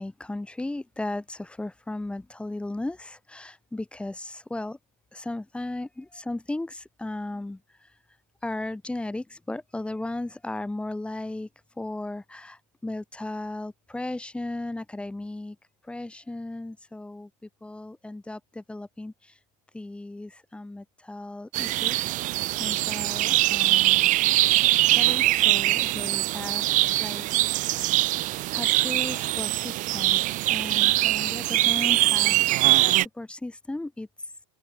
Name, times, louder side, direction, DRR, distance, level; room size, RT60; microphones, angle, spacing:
voice 1, 0.0-4.8 5.1-7.6 8.4-11.5 11.8-15.6 15.9-19.1 19.7-22.1 22.6-24.1 24.9-27.9 28.5-32.4 32.8-34.1, left 2 dB, 5° left, 2.7 m, -36 dB
sound 1, 21.5-33.1, right 17 dB, 45° right, 2.8 m, -23 dB
open air
supercardioid pair, 130°, 18 cm